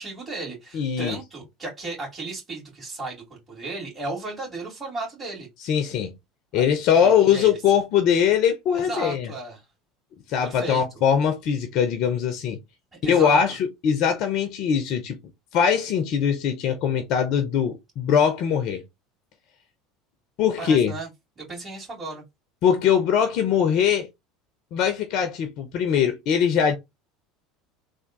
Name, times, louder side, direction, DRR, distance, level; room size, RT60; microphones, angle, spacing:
voice 1, 0.0-5.5 6.5-6.6 6.9-7.8 8.7-9.7 10.4-10.8 12.9-13.5 20.6-21.1 21.4-22.2, right 2 dB, 25° right, 2.1 m, -35 dB
voice 2, 0.7-1.2 5.6-6.1 6.5-9.3 10.3-12.6 13.0-15.2 15.5-18.8 20.4-20.9 22.6-24.1 24.7-26.7, left 8 dB, 50° left, 0.5 m, -21 dB
3.4 x 2.5 x 3.7 m
figure-of-eight pair, 70°, 0 cm